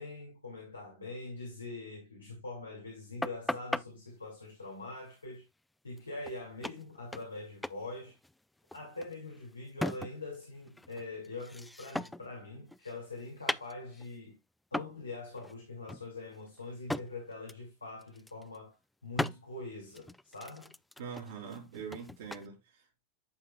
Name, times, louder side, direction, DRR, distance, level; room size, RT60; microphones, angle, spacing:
voice 1, 0.0-5.4 5.8-8.2 8.7-14.4 14.7-18.7 19.0-20.7, left 2 dB, 80° left, 2.3 m, -43 dB
sound 1, 3.2-3.9 6.0-6.1 6.2-6.4 6.6-7.4 7.6-7.8 8.1-10.4 10.7-12.3 12.7-14.2 14.7-15.0 15.4-15.5 15.9-17.1 17.5-17.7 18.0-18.6 19.2-19.4 19.9-22.5, left 1 dB, 5° left, 0.3 m, -38 dB
voice 2, 21.0-23.0, right 6 dB, 55° right, 3.0 m, -43 dB
11.5 x 5.3 x 2.3 m
figure-of-eight pair, 90°, 0 cm